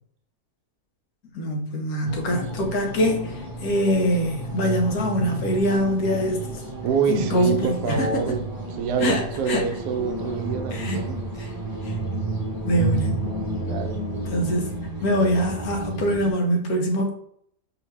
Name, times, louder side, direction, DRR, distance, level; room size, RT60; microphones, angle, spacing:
voice 1, 1.3-6.4 7.1-8.4 9.0-9.2 9.5-9.6 10.7-11.0 11.4-11.5 11.9-12.0 12.6-13.2 14.3-14.7 15.0-17.1, equal, 70° left, 1.2 m, -23 dB
sound 1, 2.0-16.3, right 2 dB, 20° right, 0.7 m, -31 dB
voice 2, 6.8-11.2 13.6-14.0, right 5 dB, 75° right, 1.1 m, -26 dB
4.8 x 2.8 x 3.2 m
omnidirectional pair, 1.7 m